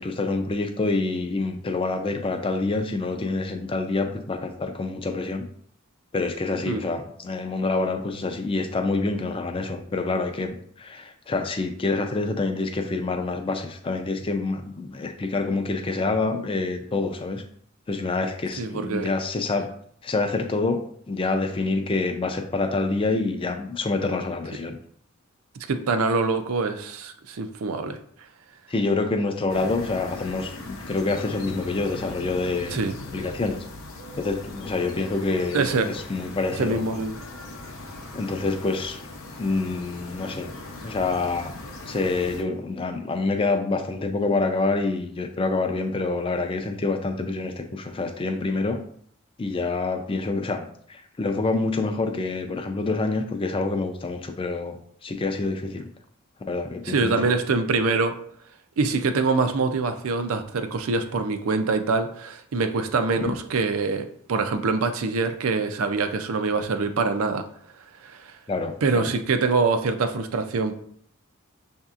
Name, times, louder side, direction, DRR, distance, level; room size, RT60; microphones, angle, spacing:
voice 1, 0.0-5.5 6.1-17.4 17.9-19.7 20.0-20.8 21.1-24.8 28.7-32.8 33.1-33.6 34.2-36.8 38.1-39.0 39.4-40.5 40.8-41.5 41.9-48.8 49.4-55.9 56.4-57.2 68.5-69.1, left 3 dB, 25° left, 6 dB, 0.4 m, -27 dB
voice 2, 18.6-19.1 25.7-28.0 32.7-32.9 35.5-35.9 36.6-37.1 56.9-58.1 58.8-67.4 68.0-68.3 68.8-70.8, right 4 dB, 85° right, 8 dB, 0.5 m, -24 dB
sound 1, 29.5-42.4, left 2 dB, 80° left, 0.6 m, -39 dB
6.4 x 2.7 x 2.4 m, 0.64 s
head